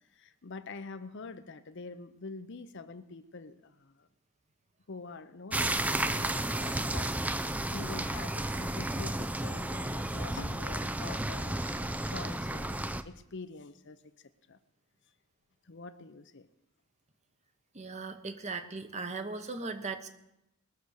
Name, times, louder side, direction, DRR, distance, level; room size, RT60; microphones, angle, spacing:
voice 1, 0.1-4.1 4.9-14.6 15.6-16.5, left 3 dB, 55° left, 11 dB, 0.7 m, -46 dB
sound 1, 5.5-13.0, right 1 dB, 5° right, 0.4 m, -32 dB
voice 2, 17.7-20.1, right 3 dB, 30° right, 8 dB, 1.0 m, -38 dB
20.5 x 6.9 x 6.4 m, 0.88 s
head